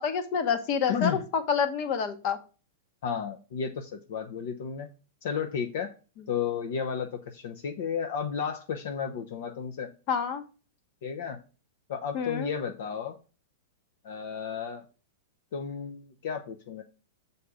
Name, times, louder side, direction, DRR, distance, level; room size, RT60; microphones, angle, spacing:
voice 1, 0.0-2.4 10.1-10.4 12.1-12.5, left 6 dB, 45° left, 10 dB, 1.2 m, -28 dB
voice 2, 0.9-1.2 3.0-4.9 5.2-5.9 6.3-9.9 11.0-11.4 11.9-13.2 14.0-14.8 15.5-16.8, left 7 dB, 65° left, 4 dB, 0.8 m, -33 dB
6.9 x 4.2 x 5.0 m, 0.34 s
hypercardioid pair, 135°, 0 cm